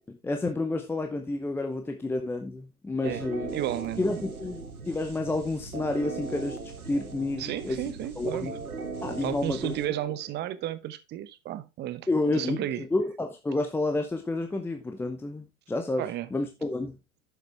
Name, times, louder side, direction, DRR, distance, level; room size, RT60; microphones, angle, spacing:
voice 1, 0.1-3.6 4.0-6.6 6.9-7.8 8.2-8.5 9.0-9.7 12.1-16.0 16.3-17.0, left 2 dB, 5° left, 0.7 m, -30 dB
sound 1, 3.0-10.7, right 4 dB, 90° right, 1.6 m, -39 dB
voice 2, 3.5-4.2 7.4-8.5 9.2-12.1 12.3-12.8 16.0-16.3, right 13 dB, 25° right, 0.9 m, -33 dB
10.5 x 7.0 x 3.3 m
hypercardioid pair, 105°, 43 cm